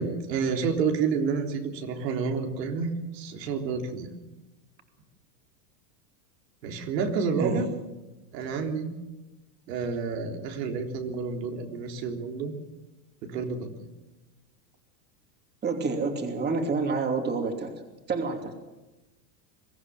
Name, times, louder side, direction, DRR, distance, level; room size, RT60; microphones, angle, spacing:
voice 1, 0.0-4.1 6.6-7.7 8.3-8.9 9.7-12.5 13.2-13.7, right 5 dB, 75° right, 3 dB, 3.8 m, -29 dB
voice 2, 15.6-17.7 18.1-18.5, right 4 dB, 20° right, 4 dB, 2.9 m, -28 dB
23.0 x 14.5 x 9.0 m, 1.1 s
supercardioid pair, 145°, 50 cm